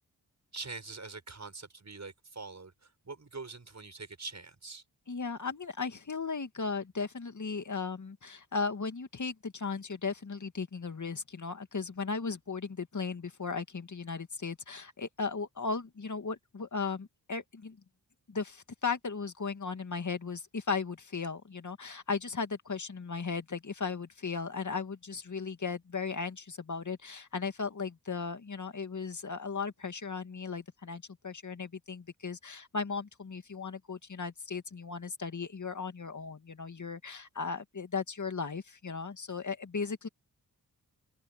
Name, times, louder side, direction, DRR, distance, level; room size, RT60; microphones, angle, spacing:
voice 1, 0.5-4.8, right 3 dB, 45° right, 6.9 m, -44 dB
voice 2, 5.1-17.8 18.3-40.1, left 5 dB, 45° left, 2.3 m, -36 dB
cardioid pair, 45°, 40 cm